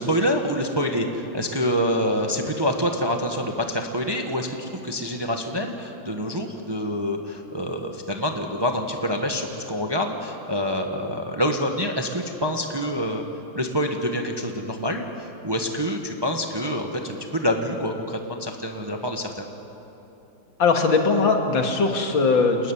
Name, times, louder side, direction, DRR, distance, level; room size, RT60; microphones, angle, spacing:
voice 1, 0.0-13.2 13.5-19.5, equal, 15° right, 3 dB, 1.1 m, -26 dB
voice 2, 20.6-22.7, left 4 dB, 75° left, 3 dB, 2.6 m, -20 dB
29.0 x 13.5 x 9.8 m, 3.0 s
omnidirectional pair, 2.1 m